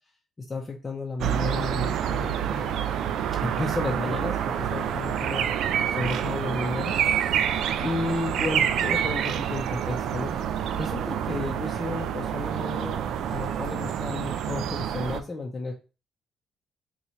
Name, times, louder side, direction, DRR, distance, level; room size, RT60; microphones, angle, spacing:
voice 1, 0.5-3.1 3.4-5.4 5.9-7.0 7.4-10.3 10.7-13.0 13.3-15.7, left 3 dB, 30° left, -1 dB, 0.7 m, -33 dB
sound 1, 1.2-15.2, right 9 dB, 80° right, 0.3 m, -27 dB
2.8 x 2.4 x 4.2 m, 0.33 s
cardioid pair, 90°, 0 cm